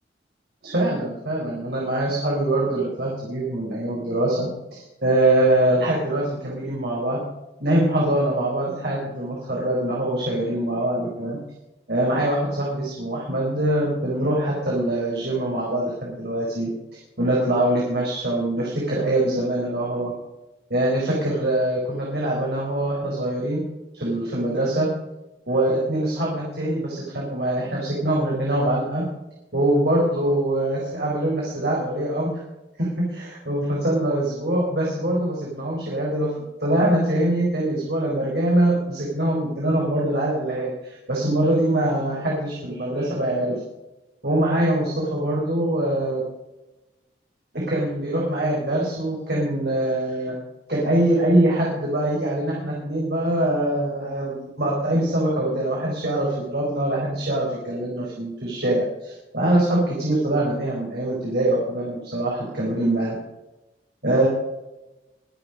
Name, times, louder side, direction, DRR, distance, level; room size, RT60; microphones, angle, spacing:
voice 1, 0.6-7.2 7.6-11.4 11.9-16.7 17.2-20.1 20.7-23.6 23.9-24.9 25.5-29.0 29.5-32.4 32.8-43.6 44.2-46.2 47.5-50.3 50.7-63.2 64.0-64.3, right 1 dB, 65° right, -4 dB, 4.5 m, -23 dB
23.5 x 7.9 x 5.3 m, 1.0 s
head